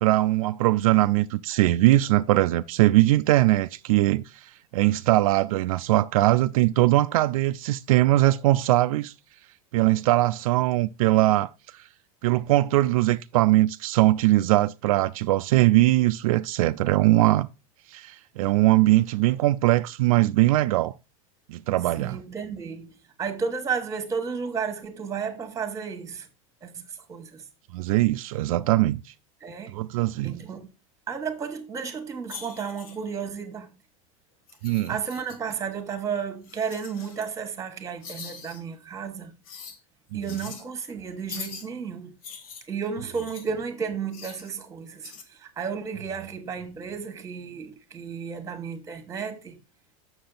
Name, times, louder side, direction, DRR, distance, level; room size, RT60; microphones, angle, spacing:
voice 1, 0.0-9.1 9.7-11.5 12.2-17.5 17.9-20.9 21.5-22.2 27.7-29.0 29.7-30.4 34.6-35.0 40.1-40.2, right 16 dB, 80° right, 0.4 m, -21 dB
voice 2, 22.0-22.9 23.2-26.3 26.6-26.8 27.1-27.4 29.4-29.8 30.2-30.7 31.1-33.7 34.9-39.3 40.1-42.2 42.7-49.6, right 6 dB, 20° right, 1.3 m, -33 dB
sound 1, 32.3-33.1 34.5-35.5 36.4-37.3 38.0-38.6 39.4-39.8 40.2-40.6 41.3-41.7 42.2-43.5 44.1-44.5 45.0-45.2, left 6 dB, 80° left, 1.5 m, -42 dB
6.8 x 6.4 x 3.9 m
supercardioid pair, 145°, 18 cm